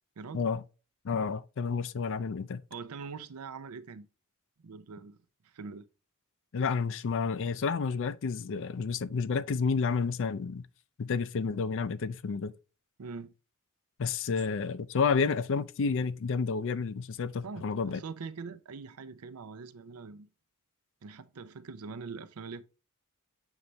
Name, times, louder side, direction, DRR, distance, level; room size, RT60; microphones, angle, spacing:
voice 1, 0.2-0.5 2.7-4.1 4.6-5.2 5.4-5.9 13.0-13.3 17.4-20.3 21.0-22.6, right 4 dB, 90° right, 0.6 m, -43 dB
voice 2, 1.0-2.6 6.5-10.6 11.0-12.5 14.0-18.0, left 5 dB, 60° left, 0.4 m, -30 dB
7.3 x 3.3 x 3.9 m
head